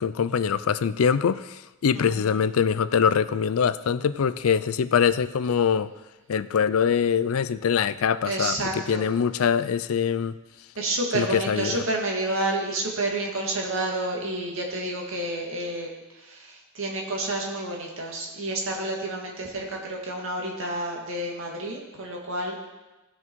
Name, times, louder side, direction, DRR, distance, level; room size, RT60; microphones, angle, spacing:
voice 1, 0.0-5.9 6.3-10.4 11.1-11.8, left 7 dB, 85° left, 15 dB, 0.4 m, -23 dB
voice 2, 1.9-2.4 8.3-9.1 10.8-22.6, right 2 dB, 65° right, 0 dB, 2.1 m, -30 dB
16.0 x 6.1 x 4.6 m, 1.1 s
head